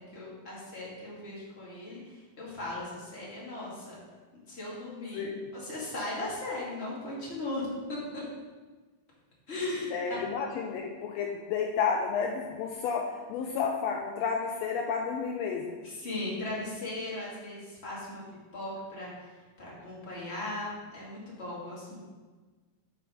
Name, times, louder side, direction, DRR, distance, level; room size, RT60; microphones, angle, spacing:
voice 1, 0.1-4.0 4.5-7.6 8.1-8.2 9.5-10.2 15.8-18.2 18.5-22.0, left 2 dB, 25° left, -6 dB, 2.3 m, -38 dB
voice 2, 5.1-5.5 9.9-15.8, left 6 dB, 80° left, 2 dB, 1.7 m, -31 dB
9.1 x 4.5 x 6.2 m, 1.3 s
omnidirectional pair, 3.3 m